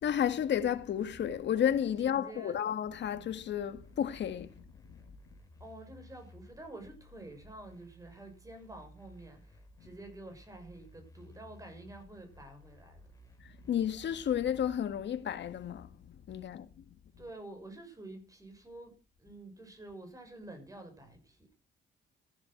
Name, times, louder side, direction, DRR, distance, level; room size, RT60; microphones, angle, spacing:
voice 1, 0.0-4.5 13.4-16.7, left 9 dB, 65° left, 1.8 m, -32 dB
voice 2, 2.0-2.6 5.6-13.0 16.4-16.5 17.2-21.5, right 2 dB, 15° right, 6.5 m, -49 dB
sound 1, 3.7-14.8, equal, 15° left, 5.2 m, -57 dB
15.0 x 11.0 x 6.0 m
cardioid pair, 90°, 20 cm